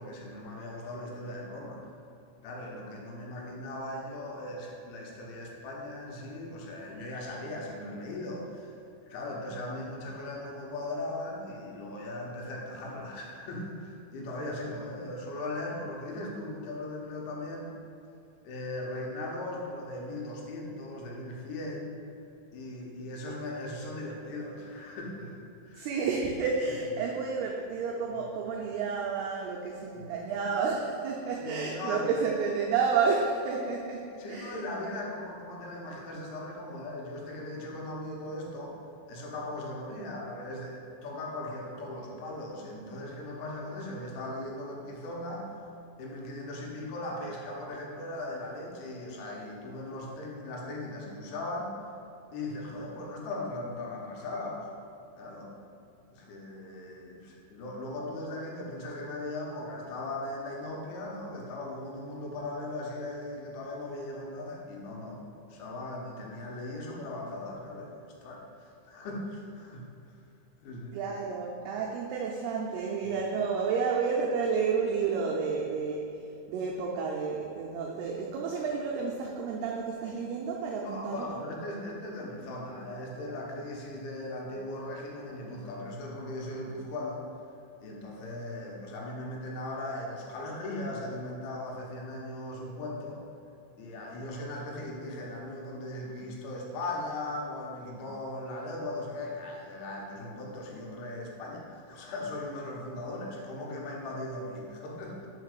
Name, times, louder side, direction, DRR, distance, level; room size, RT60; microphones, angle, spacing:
voice 1, 0.0-1.9 2.4-8.8 9.1-17.7 18.5-22.0 22.5-25.9 26.7-26.8 29.9-30.2 31.4-32.1 34.2-38.8 39.1-45.5 46.0-51.7 52.3-54.7 55.1-55.6 56.1-65.2 65.5-70.2 70.6-71.0 73.0-73.1 80.8-87.2 87.8-93.2 93.8-105.3, left 1 dB, 90° left, -2 dB, 3.5 m, -38 dB
voice 2, 25.8-34.6 70.9-76.2 76.5-81.3, right 5 dB, 90° right, -2 dB, 2.2 m, -30 dB
5.8 x 5.2 x 6.5 m, 2.6 s
omnidirectional pair, 5.3 m